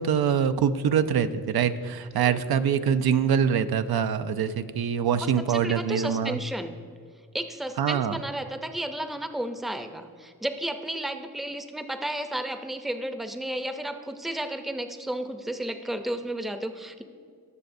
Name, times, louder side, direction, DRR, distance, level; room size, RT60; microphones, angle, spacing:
voice 1, 0.0-6.4 7.8-8.2, right 7 dB, 85° right, 11 dB, 0.5 m, -24 dB
voice 2, 5.2-6.8 7.3-17.0, right 1 dB, ahead, 7 dB, 0.5 m, -33 dB
19.5 x 6.7 x 2.6 m, 2.2 s
wide cardioid pair, 95°, 37 cm